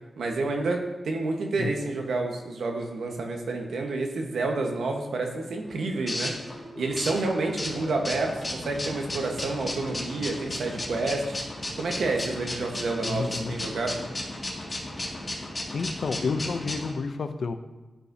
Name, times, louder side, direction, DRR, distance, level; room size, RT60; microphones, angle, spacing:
voice 1, 0.2-6.3 6.8-11.4 11.8-14.0, right 3 dB, 85° right, 2 dB, 1.1 m, -29 dB
voice 2, 1.6-1.9 13.1-13.6 15.7-17.5, left 4 dB, 65° left, 9 dB, 0.5 m, -30 dB
sound 1, 5.3-16.9, left 1 dB, 30° left, 2.0 m, -35 dB
12.5 x 5.0 x 2.7 m, 1.2 s
wide cardioid pair, 90°, 0 cm